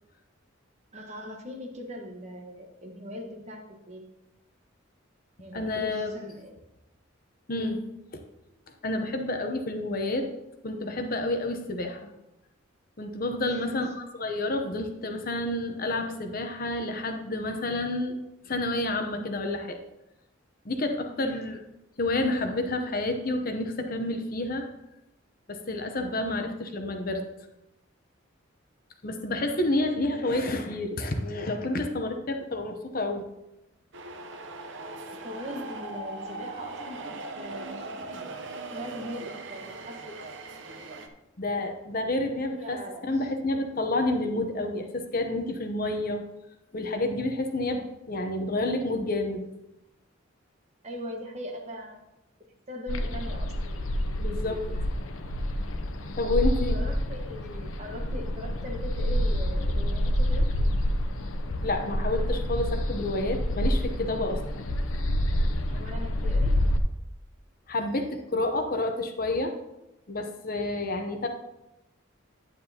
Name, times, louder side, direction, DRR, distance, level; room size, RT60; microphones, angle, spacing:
voice 1, 0.9-4.1 5.4-6.5 7.6-7.7 13.4-13.9 21.2-21.5 35.1-38.2 38.7-40.2 42.5-43.3 50.8-52.0 52.7-53.5 56.7-60.5 65.7-66.6, left 1 dB, 35° right, 2 dB, 1.3 m, -40 dB
voice 2, 5.5-6.1 7.5-7.8 8.8-10.3 10.6-12.1 13.0-18.2 18.5-19.8 20.6-21.6 22.0-24.7 25.5-27.2 29.0-33.2 41.4-46.2 46.7-49.4 54.2-54.8 56.2-56.8 61.6-64.6 67.7-69.6 70.1-71.3, left 2 dB, 45° left, 5 dB, 0.8 m, -29 dB
sound 1, 33.9-41.1, right 3 dB, 60° right, 0.8 m, -39 dB
sound 2, 52.9-66.8, equal, 85° left, 0.7 m, -28 dB
9.5 x 9.3 x 2.9 m, 0.93 s
head